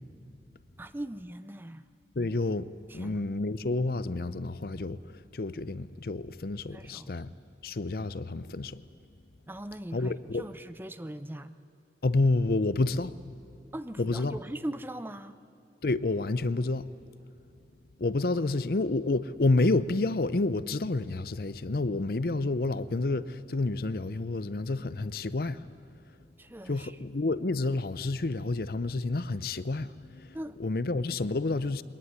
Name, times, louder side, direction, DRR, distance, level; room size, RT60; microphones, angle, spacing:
voice 1, 0.8-1.8 2.9-3.2 6.7-7.2 9.5-11.6 13.7-15.4 26.4-27.0 30.3-30.6, right 1 dB, 10° right, 0.5 m, -40 dB
voice 2, 2.2-2.7 2.9-5.0 5.3-7.3 7.6-8.8 9.9-10.5 12.0-13.2 14.0-14.4 15.8-16.9 18.0-25.6 26.7-31.8, left 2 dB, 55° left, 0.6 m, -29 dB
22.0 x 19.5 x 9.7 m
head